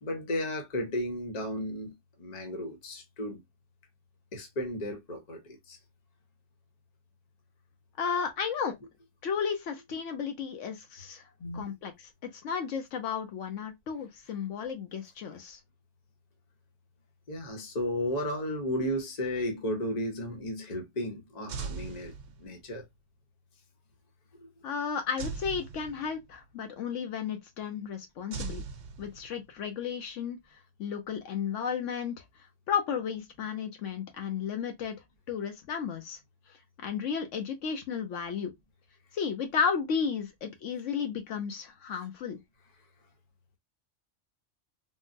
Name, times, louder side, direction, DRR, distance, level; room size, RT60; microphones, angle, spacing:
voice 1, 0.0-1.9 2.2-3.4 4.3-5.8 11.4-11.7 17.3-22.1 22.4-22.8 24.4-24.5, left 1 dB, 40° left, 0.8 m, -34 dB
voice 2, 8.0-8.8 9.2-11.2 11.5-11.9 12.2-15.6 24.6-28.6 29.0-30.4 30.8-32.2 32.7-35.0 35.3-36.2 36.8-38.5 39.1-42.4, left 6 dB, 75° left, 1.0 m, -33 dB
sound 1, 21.5-22.8 25.2-26.5 28.3-29.6, right 5 dB, 80° right, 1.0 m, -40 dB
3.7 x 2.1 x 2.5 m
omnidirectional pair, 1.3 m